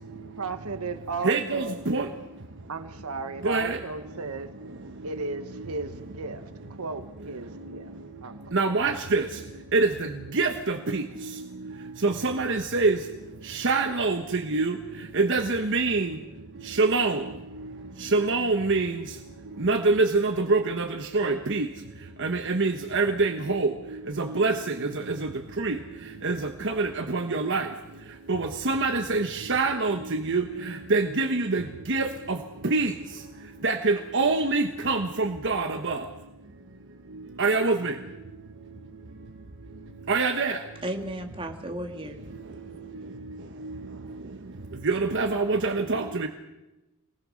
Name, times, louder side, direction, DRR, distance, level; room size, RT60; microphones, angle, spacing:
voice 1, 0.4-1.8 2.7-4.5 5.0-6.4 6.7-7.9 8.2-8.4, right 3 dB, 80° right, 1.3 m, -35 dB
voice 2, 1.2-2.1 3.4-3.8 8.5-9.3 9.7-11.0 12.0-13.0 13.5-14.7 15.1-16.2 16.7-17.2 18.0-19.0 19.6-21.7 22.2-23.7 24.2-25.3 25.6-25.8 26.2-26.4 26.6-27.7 28.3-32.4 32.6-32.9 33.6-36.0 37.4-37.9 40.1-40.6 43.6-43.7 44.8-46.3, right 3 dB, 55° right, 1.2 m, -25 dB
voice 3, 40.8-42.2, right 1 dB, 25° right, 2.1 m, -34 dB
26.0 x 19.5 x 6.4 m
head